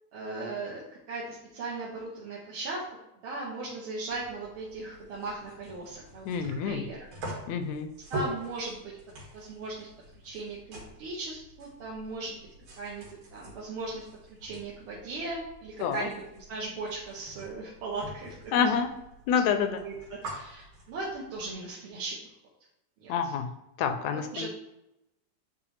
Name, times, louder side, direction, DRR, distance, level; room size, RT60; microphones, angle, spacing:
voice 1, 0.1-2.8 3.2-7.0 8.1-8.9 9.3-9.9 10.2-12.4 12.8-14.0 14.4-18.7 19.7-19.9 20.2-22.2 23.0-23.3 24.3-24.5, right 3 dB, 60° right, -5 dB, 1.6 m, -38 dB
sound 1, 4.1-21.5, right 1 dB, 90° right, 3.2 m, -45 dB
voice 2, 6.3-6.9 7.5-7.9 15.8-16.1 18.5-18.9 19.3-19.8 23.1-23.5 23.8-24.5, left 7 dB, 80° left, 8 dB, 1.8 m, -27 dB
9.0 x 3.8 x 3.2 m, 0.88 s
omnidirectional pair, 3.3 m